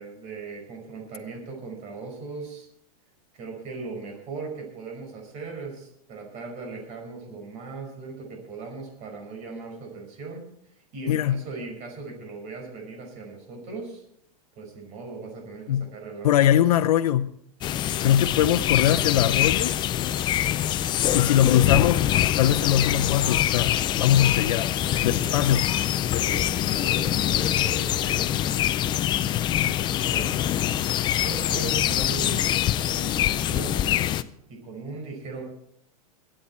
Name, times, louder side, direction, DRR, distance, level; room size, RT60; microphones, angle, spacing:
voice 1, 0.0-2.7 3.3-10.4 10.9-14.0 14.6-16.4 17.8-18.2 21.1-21.5 25.2-25.4 26.0-29.0 29.9-30.6 31.0-32.4 32.8-33.8 34.5-35.4, right 4 dB, 35° right, 1 dB, 5.2 m, -39 dB
voice 2, 11.1-11.4 15.7-15.9 16.2-17.3 18.0-19.8 21.1-22.1 22.4-24.7 25.0-25.7 29.7-29.8, left 11 dB, 85° left, 7 dB, 0.7 m, -22 dB
sound 1, 17.6-34.2, left 12 dB, 25° left, 0.5 m, -24 dB
22.0 x 8.8 x 4.4 m, 0.72 s
supercardioid pair, 145°, 19 cm